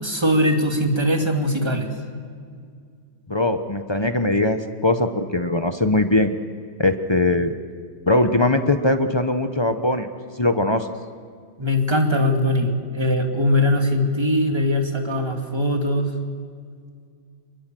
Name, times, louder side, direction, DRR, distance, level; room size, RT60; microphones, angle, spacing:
voice 1, 0.0-1.9 11.6-16.1, left 1 dB, 15° right, 3 dB, 2.3 m, -21 dB
voice 2, 3.3-6.3 6.8-7.5 8.1-10.1 10.4-10.9, left 2 dB, 30° left, 8 dB, 0.4 m, -20 dB
25.0 x 23.0 x 7.7 m, 2.1 s
omnidirectional pair, 2.2 m